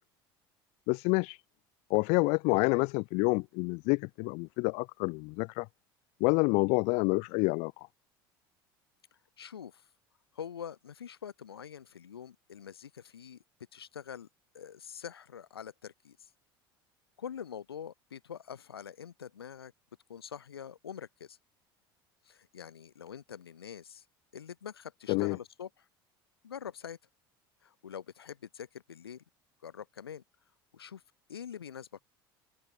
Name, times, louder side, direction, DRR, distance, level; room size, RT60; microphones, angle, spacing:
voice 1, 0.9-1.4 1.9-5.7 6.2-7.7 25.1-25.4, left 31 dB, 60° left, 0.4 m, -28 dB
voice 2, 9.4-9.8 10.3-13.4 13.7-14.3 14.5-16.2 17.2-19.7 20.1-21.4 22.2-24.0 24.3-25.7 26.4-27.0 27.6-29.2 29.6-30.2 30.7-31.0 31.3-32.0, left 8 dB, 90° left, 1.7 m, -45 dB
hypercardioid pair, 70°, 12 cm